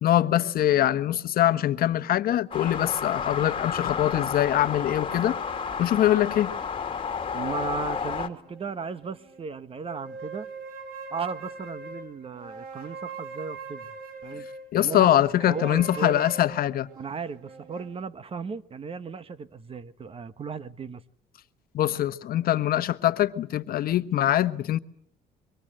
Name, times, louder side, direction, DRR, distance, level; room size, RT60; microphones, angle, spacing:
voice 1, 0.0-5.4 5.8-6.5 14.7-16.9 21.7-24.8, left 12 dB, 60° left, 1.1 m, -23 dB
sound 1, 2.5-8.3, left 6 dB, 30° left, 2.5 m, -31 dB
voice 2, 7.3-10.5 11.1-13.9 14.2-14.4 14.7-15.1 15.4-16.2 16.9-21.0, right 5 dB, 35° right, 1.2 m, -35 dB
sound 2, 7.4-9.5 9.8-14.7 15.4-18.0, right 4 dB, 60° right, 4.1 m, -42 dB
26.0 x 24.0 x 7.7 m
cardioid pair, 110°, 17 cm